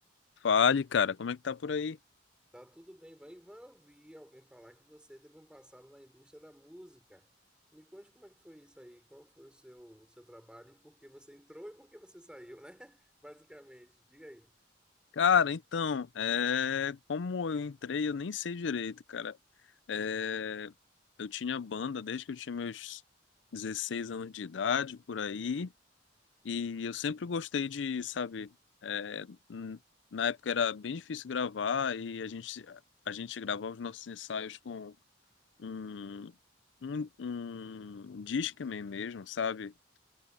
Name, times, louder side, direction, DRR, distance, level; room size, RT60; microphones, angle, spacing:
voice 1, 0.4-2.0 15.1-19.4 19.9-20.7 21.2-23.0 23.5-25.7 26.4-28.5 28.8-29.8 30.1-32.8 33.1-34.9 35.6-36.3 36.8-39.7, left 6 dB, 80° left, 0.5 m, -33 dB
voice 2, 2.5-7.3 7.7-14.5, equal, 5° right, 4.4 m, -53 dB
head